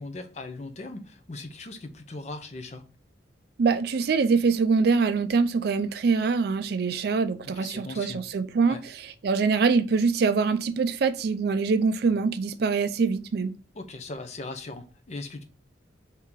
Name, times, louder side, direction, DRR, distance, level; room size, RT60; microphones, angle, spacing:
voice 1, 0.0-2.8 7.5-8.3 8.7-8.8 13.7-15.4, left 2 dB, 35° left, 0.5 m, -39 dB
voice 2, 3.6-8.8 9.2-13.5, right 4 dB, 55° right, 0.4 m, -24 dB
3.7 x 2.7 x 4.4 m
head